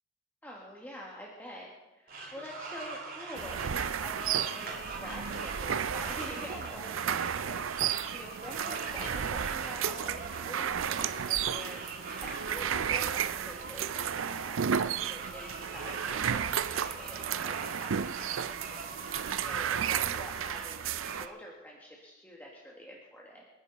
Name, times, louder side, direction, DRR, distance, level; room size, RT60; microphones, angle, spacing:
voice 1, 0.4-14.6 15.0-23.5, equal, 10° left, -4 dB, 1.8 m, -46 dB
sound 1, 2.1-21.3, right 3 dB, 45° right, 3.0 m, -44 dB
sound 2, 3.4-21.3, right 8 dB, 80° right, 0.5 m, -33 dB
28.0 x 10.0 x 4.1 m, 1.1 s
head